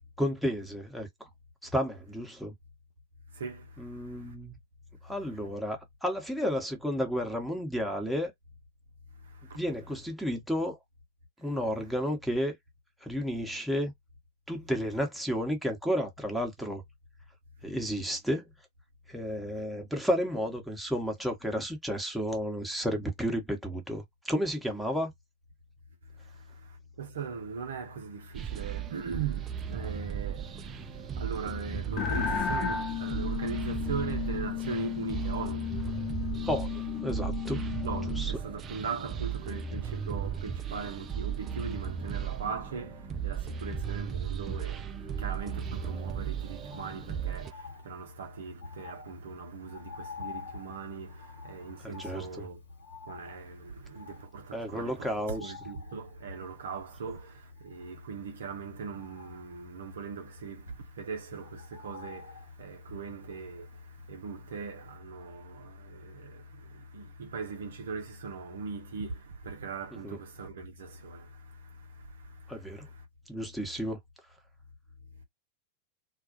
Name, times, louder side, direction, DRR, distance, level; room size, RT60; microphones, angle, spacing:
voice 1, 0.2-1.3 1.6-2.5 3.8-4.6 5.0-8.3 9.5-10.8 11.4-12.6 13.0-13.9 14.5-16.8 17.6-18.5 19.1-25.1 36.5-37.6 38.2-38.3 51.8-52.5 54.5-55.5 70.0-70.2 72.5-72.9 73.3-74.0, equal, ahead, 0.9 m, -32 dB
voice 2, 3.3-4.3 9.2-9.6 26.2-36.5 37.8-52.6 53.1-55.1 55.4-73.0, right 5 dB, 65° right, 0.6 m, -40 dB
sound 1, 28.3-47.5, right 8 dB, 25° right, 0.3 m, -36 dB
sound 2, 32.0-38.3, left 9 dB, 35° left, 0.4 m, -34 dB
Bird, 45.5-64.6 64.9-65.0, left 4 dB, 80° left, 1.3 m, -49 dB
2.4 x 2.2 x 2.5 m
figure-of-eight pair, 90°, 0 cm